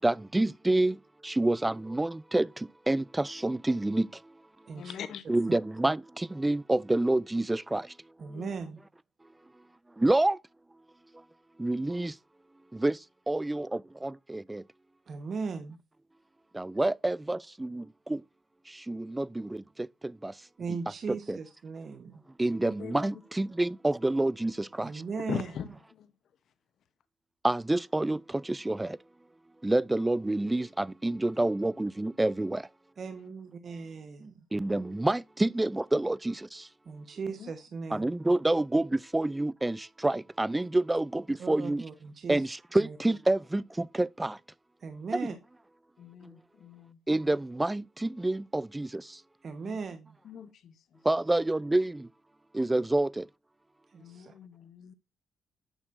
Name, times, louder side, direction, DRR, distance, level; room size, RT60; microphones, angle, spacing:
voice 1, 0.0-4.3 5.3-7.9 10.0-10.4 11.6-12.2 12.7-14.6 16.5-18.2 18.7-20.4 21.3-21.4 22.4-25.0 27.4-29.0 29.6-32.7 34.5-36.7 37.9-41.8 42.3-44.4 46.2-46.3 47.1-49.2 51.0-52.1 52.5-53.3, right 2 dB, 15° right, 0.3 m, -28 dB
voice 2, 4.8-5.2 8.3-8.6 22.6-23.1 25.3-25.7 37.2-37.5 46.0-47.0 49.6-49.8 50.3-50.7 54.0-54.9, left 8 dB, 65° left, 0.7 m, -41 dB
voice 3, 8.2-8.8 15.1-15.8 20.6-22.2 24.8-25.6 33.0-34.3 36.8-38.1 41.3-42.4 42.8-43.0 44.8-45.3 49.4-50.2 53.9-54.3, right 5 dB, 50° right, 1.0 m, -38 dB
8.9 x 6.3 x 2.5 m
cardioid pair, 90°, 0 cm